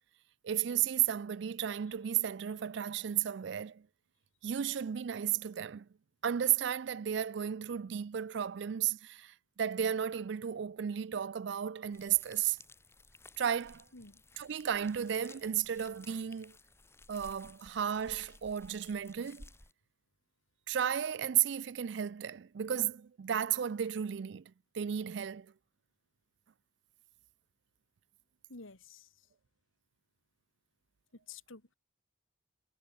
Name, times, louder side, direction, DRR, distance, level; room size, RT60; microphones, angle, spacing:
voice 1, 0.4-3.8 4.4-5.9 6.2-12.6 13.4-13.8 14.4-16.5 17.1-19.5 20.7-24.4 24.7-25.5, right 9 dB, 60° right, 0.4 m, -33 dB
sound 1, 11.9-19.7, left 2 dB, 15° left, 4.0 m, -56 dB
voice 2, 28.5-29.1 31.3-31.7, left 4 dB, 85° left, 2.4 m, -50 dB
head